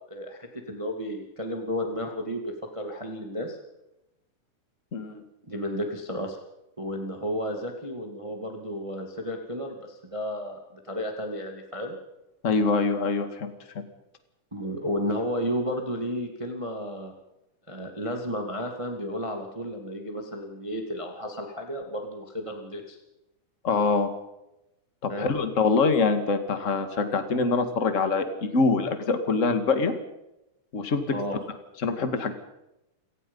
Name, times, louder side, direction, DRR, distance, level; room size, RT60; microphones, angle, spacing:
voice 1, 0.1-3.6 5.4-6.4 6.8-12.0 14.5-17.1 17.7-23.0 25.1-25.3 31.1-31.4, equal, 10° right, 3 dB, 1.8 m, -32 dB
voice 2, 4.9-5.2 12.4-13.5 23.6-24.1 25.0-30.0 30.7-31.2 31.8-32.3, left 4 dB, 30° left, 8 dB, 1.7 m, -24 dB
29.0 x 18.0 x 5.5 m, 0.91 s
omnidirectional pair, 3.7 m